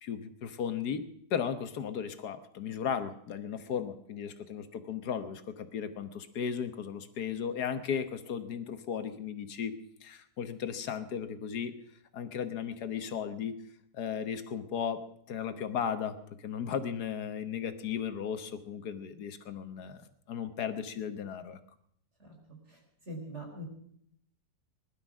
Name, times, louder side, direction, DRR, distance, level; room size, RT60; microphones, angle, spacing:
voice 1, 0.0-1.0 1.3-11.7 12.1-13.6 13.9-15.0 15.3-21.6, left 7 dB, 85° left, 10 dB, 1.7 m, -36 dB
voice 2, 23.1-23.6, equal, 45° right, 1 dB, 4.4 m, -42 dB
20.0 x 11.5 x 6.1 m, 0.69 s
omnidirectional pair, 1.7 m